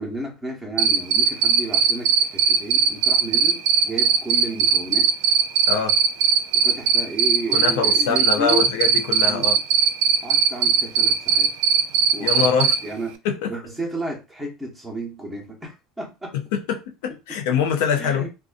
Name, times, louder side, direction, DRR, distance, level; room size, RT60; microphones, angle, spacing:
voice 1, 0.0-5.3 6.5-8.7 9.1-9.5 10.2-11.5 12.1-13.2 13.5-16.4 18.0-18.3, right 2 dB, 5° right, 0.8 m, -32 dB
Cricket, 0.8-12.7, right 7 dB, 70° right, 0.4 m, -18 dB
voice 2, 7.5-9.6 12.2-12.7 13.2-13.5 16.3-18.3, left 7 dB, 80° left, 0.6 m, -24 dB
2.6 x 2.2 x 2.5 m
cardioid pair, 150°, 0 cm